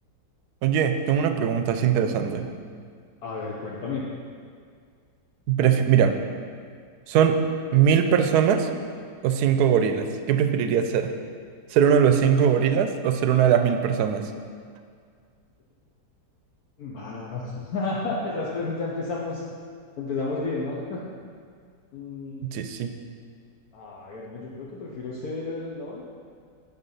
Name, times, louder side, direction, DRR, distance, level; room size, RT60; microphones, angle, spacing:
voice 1, 0.6-2.5 5.5-6.2 7.1-7.4 7.7-8.7 9.2-11.1 11.7-14.3 22.4-22.9, right 8 dB, 75° right, 7 dB, 1.1 m, -21 dB
voice 2, 3.2-4.0 16.8-19.4 20.0-21.0 21.9-22.7 23.7-26.0, left 3 dB, 65° left, -5 dB, 1.4 m, -32 dB
9.8 x 5.3 x 5.5 m, 2.1 s
omnidirectional pair, 1.8 m